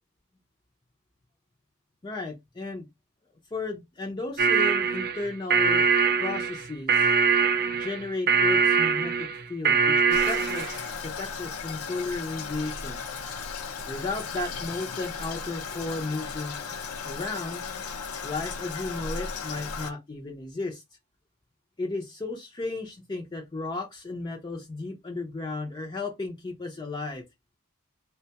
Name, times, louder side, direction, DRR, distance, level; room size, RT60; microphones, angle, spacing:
voice 1, 2.0-2.9 3.5-5.9 6.2-7.1 7.7-13.0 13.9-16.7 17.0-17.6 18.2-20.8 21.8-27.2, left 3 dB, 20° left, 0.5 m, -34 dB
sound 1, 4.4-10.8, right 5 dB, 45° right, 0.4 m, -23 dB
Toilet flush, 10.1-19.9, left 5 dB, 70° left, 0.6 m, -36 dB
3.7 x 2.2 x 2.7 m
head